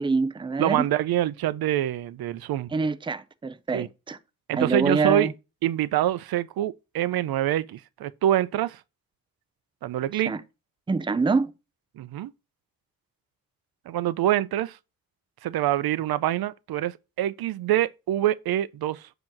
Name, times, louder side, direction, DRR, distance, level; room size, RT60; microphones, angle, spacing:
voice 1, 0.0-0.9 2.7-4.2 4.5-5.3 10.3-10.4 10.9-11.5, right 4 dB, 15° right, 0.5 m, -25 dB
voice 2, 0.6-2.7 3.7-3.9 4.5-5.3 5.6-8.8 9.8-10.3 12.0-12.3 13.9-14.8 15.4-19.2, right 12 dB, 90° right, 0.5 m, -25 dB
7.6 x 2.9 x 5.9 m
wide cardioid pair, 150°, 35 cm